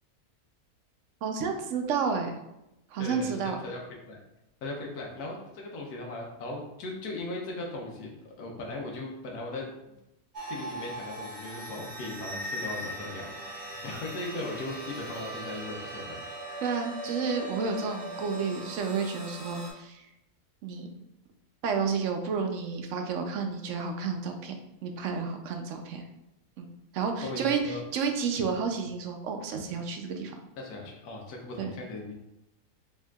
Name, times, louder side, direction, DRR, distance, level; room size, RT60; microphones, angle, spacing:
voice 1, 1.2-2.4 2.9-3.6 16.6-20.1 20.6-20.9 21.6-24.5 24.8-26.0 26.6-26.7 26.9-30.3 31.6-31.7, right 5 dB, 65° right, 4 dB, 0.8 m, -31 dB
voice 2, 3.0-3.8 4.1-4.2 4.6-9.9 10.4-16.2 27.2-27.8 30.6-32.1, left 2 dB, 85° left, 0 dB, 1.3 m, -38 dB
sound 1, 10.3-19.7, right 1 dB, 35° right, 0.8 m, -39 dB
4.5 x 3.5 x 2.3 m, 0.89 s
omnidirectional pair, 1.6 m